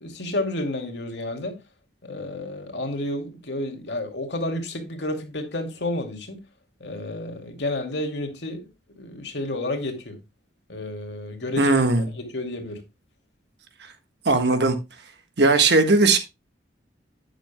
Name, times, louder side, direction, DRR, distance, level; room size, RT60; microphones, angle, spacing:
voice 1, 0.0-1.6 2.0-6.4 6.8-8.7 9.0-10.2 10.7-11.8 12.1-12.8, left 1 dB, 75° left, 2.5 m, -30 dB
voice 2, 11.6-12.1 13.8-13.9 14.2-14.8 15.4-16.2, right 3 dB, 65° right, 1.4 m, -18 dB
11.5 x 9.3 x 2.2 m
head